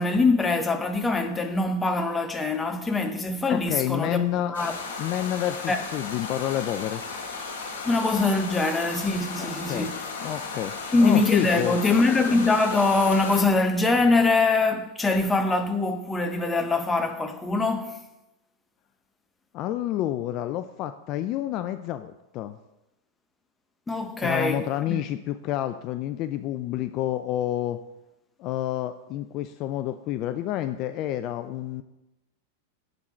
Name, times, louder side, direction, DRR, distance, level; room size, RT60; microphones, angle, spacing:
voice 1, 0.0-4.8 5.7-5.8 7.9-10.0 10.9-18.0 23.9-25.0, left 3 dB, 15° left, 0.8 m, -23 dB
voice 2, 3.5-4.6 5.0-7.0 9.4-9.9 10.2-11.8 19.5-22.6 24.2-27.8 28.4-31.8, left 12 dB, 45° left, 0.3 m, -29 dB
sound 1, 4.5-13.4, left 4 dB, 75° left, 1.4 m, -35 dB
10.5 x 3.8 x 4.3 m
hypercardioid pair, 115°, 0 cm